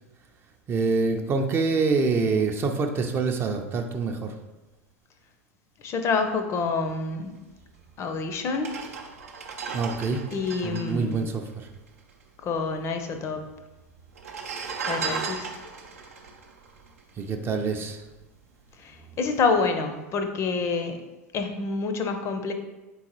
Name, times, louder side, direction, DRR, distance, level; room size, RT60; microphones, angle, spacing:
voice 1, 0.7-4.3 9.7-10.2 10.6-11.7 17.2-18.0, right 4 dB, 30° right, 5 dB, 0.5 m, -26 dB
voice 2, 5.8-7.3 8.0-8.8 10.3-11.2 12.4-13.5 14.9-15.5 18.8-21.0 21.3-22.5, left 4 dB, 35° left, 7 dB, 0.5 m, -27 dB
sound 1, 7.8-7.9 8.5-12.2 12.4-12.5 12.7-13.4 14.1-17.6 18.0-18.2, right 5 dB, 75° right, 0.5 m, -36 dB
3.8 x 3.7 x 3.0 m, 1.1 s
hypercardioid pair, 85°, 8 cm